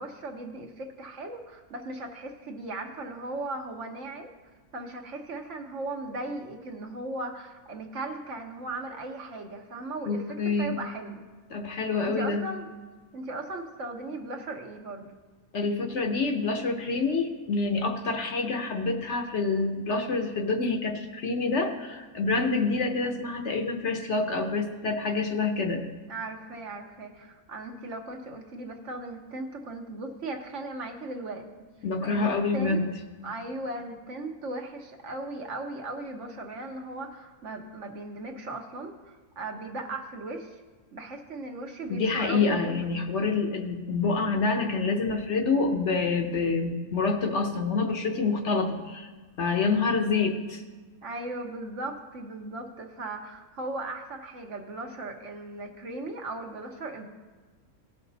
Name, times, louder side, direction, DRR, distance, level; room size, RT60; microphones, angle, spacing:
voice 1, 0.0-4.3 4.7-11.2 11.8-12.7 13.1-15.1 26.1-31.4 32.0-32.9 33.2-40.6 40.9-42.8 51.0-57.1, right 2 dB, 55° right, 3 dB, 1.2 m, -37 dB
voice 2, 10.1-10.7 11.5-12.4 15.5-25.8 31.8-32.9 41.9-49.1 49.4-50.6, left 4 dB, 55° left, 4 dB, 1.0 m, -27 dB
17.0 x 5.9 x 4.0 m, 1.4 s
omnidirectional pair, 1.5 m